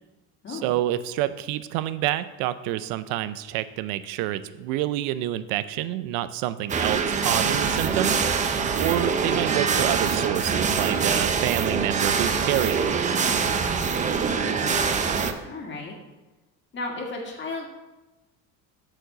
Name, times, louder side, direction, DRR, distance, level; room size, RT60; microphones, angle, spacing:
voice 1, 0.5-8.3 8.7-12.8, right 13 dB, 80° right, 14 dB, 0.5 m, -28 dB
sound 1, 6.7-15.3, right 5 dB, 20° right, 0.5 m, -24 dB
voice 2, 14.3-16.0 16.7-17.7, left 3 dB, 35° left, 0 dB, 2.0 m, -35 dB
8.7 x 4.7 x 6.5 m, 1.1 s
cardioid pair, 135°, 34 cm